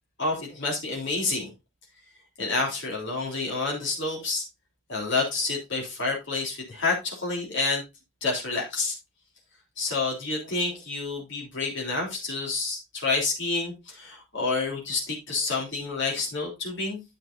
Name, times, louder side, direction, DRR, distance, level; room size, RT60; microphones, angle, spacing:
voice 1, 0.2-1.5 2.4-4.4 4.9-7.8 8.2-8.9 9.8-17.0, left 3 dB, 55° left, 3.3 m, -29 dB
10.0 x 7.7 x 2.6 m
head